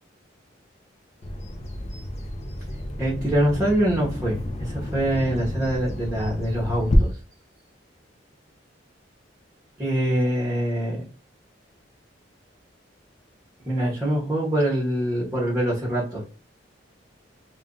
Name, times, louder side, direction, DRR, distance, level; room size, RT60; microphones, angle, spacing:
Bird vocalization bird call bird song, 1.2-7.0, left 1 dB, 35° left, 0.5 m, -32 dB
voice 1, 3.0-7.1 9.8-11.0 13.6-16.2, right 1 dB, 15° right, -6 dB, 0.9 m, -24 dB
2.5 x 2.2 x 3.6 m, 0.36 s
head